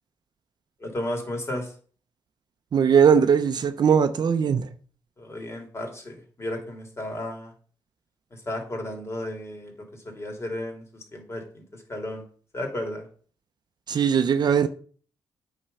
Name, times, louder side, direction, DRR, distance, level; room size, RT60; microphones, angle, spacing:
voice 1, 0.8-1.7 5.2-7.5 8.4-12.2 12.5-13.0, left 1 dB, 30° left, 3.2 m, -34 dB
voice 2, 2.7-4.7 13.9-14.7, right 7 dB, 55° right, 0.8 m, -20 dB
8.8 x 6.0 x 5.5 m
cardioid pair, 105°, 9 cm